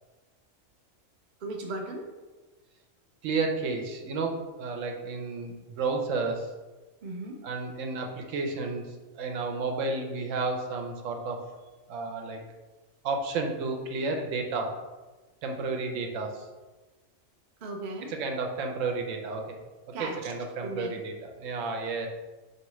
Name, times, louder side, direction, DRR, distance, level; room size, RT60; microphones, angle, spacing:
voice 1, 1.4-2.1 7.0-7.4 17.6-18.1 19.9-20.3 20.6-21.0, right 2 dB, 50° right, 1 dB, 0.5 m, -36 dB
voice 2, 3.2-6.5 7.4-8.8 9.2-11.4 11.9-12.4 13.0-14.7 15.4-16.5 18.2-19.5 20.2-22.1, right 3 dB, 75° right, 3 dB, 0.9 m, -31 dB
4.5 x 2.8 x 3.0 m, 1.2 s
omnidirectional pair, 1.4 m